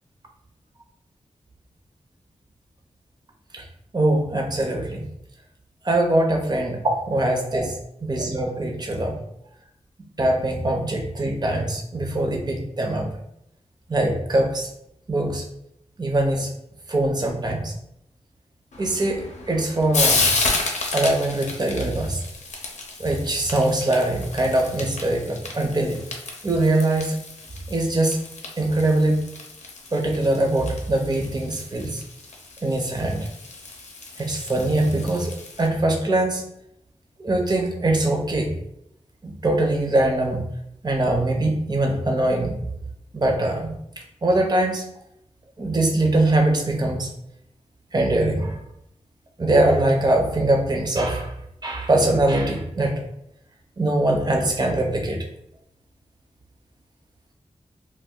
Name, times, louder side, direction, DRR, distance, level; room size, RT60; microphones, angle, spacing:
voice 1, 3.9-5.1 5.8-7.7 8.0-9.2 10.2-13.1 13.9-14.7 15.1-15.4 16.0-16.5 16.9-17.7 18.8-20.2 20.9-22.2 23.0-26.0 26.4-27.2 27.7-28.2 28.6-29.2 29.9-32.0 32.6-33.3 34.2-35.3 35.6-36.5 37.2-38.5 39.2-40.4 40.8-42.6 43.1-43.7 44.2-44.9 45.6-47.1 47.9-48.6 49.4-51.3 51.6-53.0 53.8-55.2, right 1 dB, 35° right, 1 dB, 0.7 m, -22 dB
Frying (food), 18.7-35.7, left 3 dB, 80° left, 0.6 m, -31 dB
2.3 x 2.2 x 3.7 m, 0.76 s
cardioid pair, 50°, 12 cm